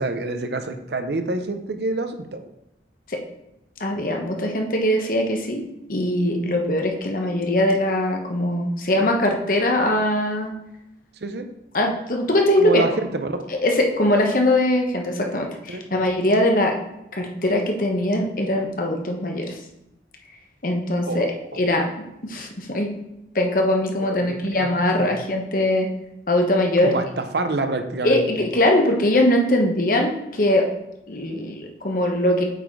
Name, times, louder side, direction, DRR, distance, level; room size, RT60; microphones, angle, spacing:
voice 1, 0.0-2.4 11.2-11.5 12.6-13.4 15.7-15.8 21.1-21.3 24.0-24.7 25.0-25.1 26.8-28.2, right 2 dB, 65° right, 8 dB, 0.7 m, -27 dB
voice 2, 3.8-5.6 5.9-10.5 11.7-12.8 13.5-16.8 17.1-19.6 20.6-22.9 23.3-25.9 26.3-26.9 28.0-30.7 31.1-32.4, left 1 dB, 50° left, 2 dB, 1.1 m, -21 dB
8.1 x 4.2 x 4.7 m, 0.88 s
head